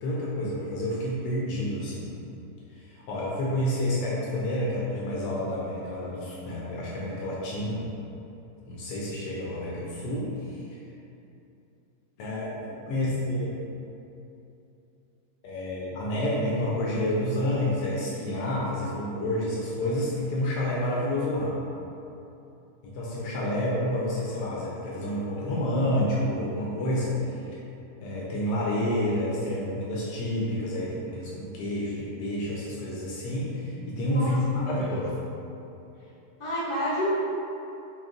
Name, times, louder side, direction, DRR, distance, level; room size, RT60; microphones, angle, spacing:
voice 1, 0.0-2.1 2.7-7.9 8.7-10.6 12.2-13.5 15.4-21.5 22.8-27.3 28.0-35.1, left 1 dB, 85° left, -5 dB, 1.2 m, -29 dB
voice 2, 34.1-35.0 36.4-37.1, equal, 65° left, -9 dB, 1.5 m, -30 dB
6.0 x 2.4 x 2.5 m, 2.8 s
omnidirectional pair, 1.8 m